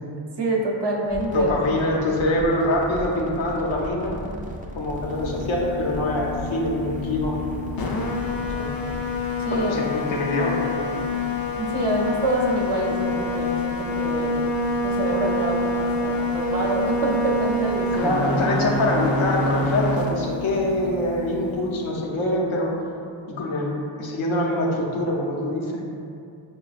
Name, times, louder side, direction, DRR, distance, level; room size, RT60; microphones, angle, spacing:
voice 1, 0.4-1.9 9.4-9.9 11.5-14.5 14.8-18.5, right 1 dB, 60° right, -2 dB, 0.7 m, -26 dB
sound 1, 1.0-9.6, equal, 20° right, 0.5 m, -37 dB
voice 2, 1.3-4.3 4.7-7.4 8.5-8.7 9.5-11.2 17.9-22.7 23.3-25.7, left 1 dB, 85° left, -2 dB, 0.8 m, -25 dB
sound 2, 4.9-22.1, left 2 dB, 50° left, 0.5 m, -27 dB
5.6 x 2.2 x 2.4 m, 2.4 s
cardioid pair, 65°, 47 cm